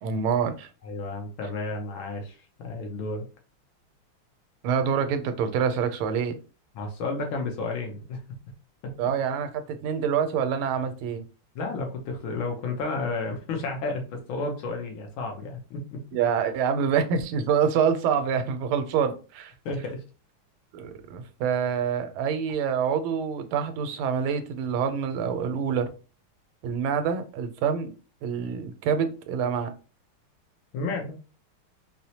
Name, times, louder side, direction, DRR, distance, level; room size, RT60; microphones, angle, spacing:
voice 1, 0.0-0.7 4.6-6.4 9.0-11.3 16.1-19.5 20.7-25.9 26.6-27.9 28.2-29.7, right 7 dB, 90° right, 8 dB, 1.5 m, -26 dB
voice 2, 0.8-3.3 6.8-8.2 11.6-16.0 19.7-20.0 30.7-31.2, left 3 dB, 75° left, 3 dB, 1.6 m, -32 dB
4.4 x 2.1 x 2.7 m, 0.34 s
omnidirectional pair, 2.3 m